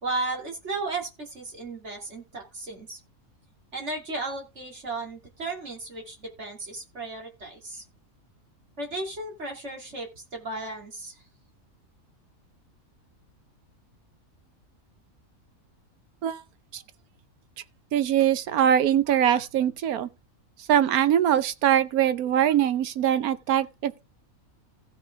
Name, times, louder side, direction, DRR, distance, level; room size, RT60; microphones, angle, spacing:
voice 1, 0.0-3.0 3.7-7.8 8.8-11.2, right 2 dB, 50° right, 2.9 m, -34 dB
voice 2, 17.9-20.1 20.7-24.0, right 10 dB, 90° right, 1.3 m, -22 dB
15.5 x 5.7 x 3.5 m
omnidirectional pair, 1.5 m